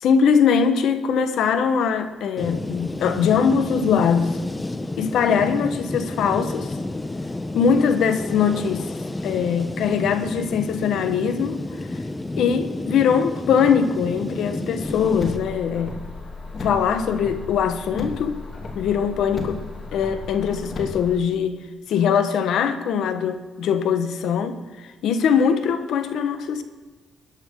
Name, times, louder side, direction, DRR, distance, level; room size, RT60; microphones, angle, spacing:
voice 1, 0.0-4.4 5.0-6.7 7.5-8.9 9.2-11.6 12.4-16.0 16.6-18.4 18.7-19.6 19.9-21.6 21.9-26.6, left 7 dB, 75° left, 10 dB, 1.2 m, -21 dB
sound 1, 2.4-15.4, left 2 dB, 15° left, 0.8 m, -31 dB
Car, 14.8-21.2, left 3 dB, 45° left, 2.7 m, -34 dB
19.5 x 11.0 x 3.8 m, 1.4 s
cardioid pair, 90°, 0 cm